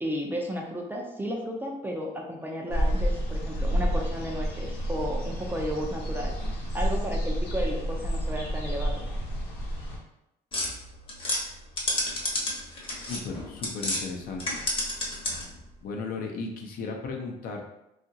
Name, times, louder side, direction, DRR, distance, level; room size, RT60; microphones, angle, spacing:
voice 1, 0.0-6.4 6.7-9.0, equal, 10° right, 0 dB, 0.4 m, -33 dB
sound 1, 2.7-10.0, equal, 90° left, 0.8 m, -29 dB
sound 2, 10.5-14.0 14.3-15.6, left 1 dB, 30° left, 0.9 m, -30 dB
voice 2, 13.1-14.6 15.8-17.6, left 4 dB, 60° left, 1 dB, 0.6 m, -35 dB
2.8 x 2.4 x 2.7 m, 0.87 s
cardioid pair, 110°, 17 cm